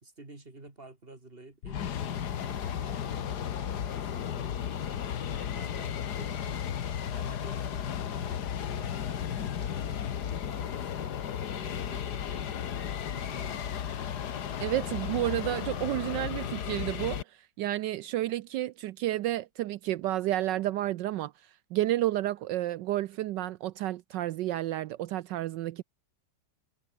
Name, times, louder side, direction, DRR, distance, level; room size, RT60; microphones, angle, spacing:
voice 1, 0.0-5.1 5.5-6.6 7.1-10.0 10.5-11.2 11.6-13.9, right 2 dB, 30° right, 4.2 m, -51 dB
sound 1, 1.6-17.2, left 9 dB, 60° left, 1.7 m, -34 dB
voice 2, 14.6-17.2 17.6-21.3 21.7-25.8, right 14 dB, 75° right, 1.2 m, -31 dB
omnidirectional pair, 2.0 m